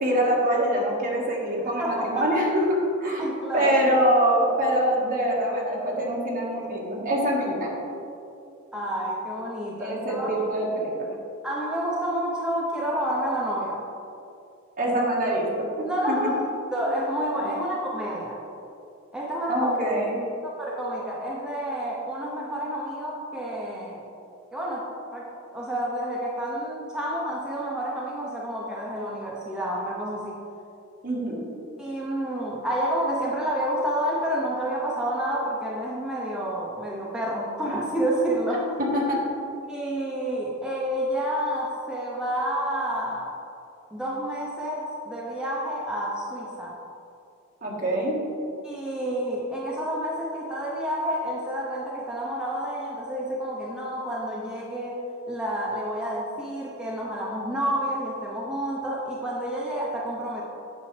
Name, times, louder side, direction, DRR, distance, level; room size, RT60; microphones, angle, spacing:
voice 1, 0.0-3.2 3.5-7.8 9.8-10.9 14.8-15.5 15.7-16.3 17.4-17.5 19.5-20.2 31.0-31.4 38.9-39.2 47.6-48.1, right 1 dB, 45° right, -3 dB, 1.4 m, -24 dB
voice 2, 1.6-2.4 3.2-3.8 8.7-10.3 11.4-13.9 15.9-16.4 16.7-18.4 19.1-19.7 20.4-24.0 24.5-30.4 31.8-38.7 39.7-43.4 43.9-46.8 48.6-55.0 55.3-60.4, equal, 5° right, -5 dB, 0.6 m, -29 dB
8.4 x 6.2 x 3.2 m, 2.6 s
head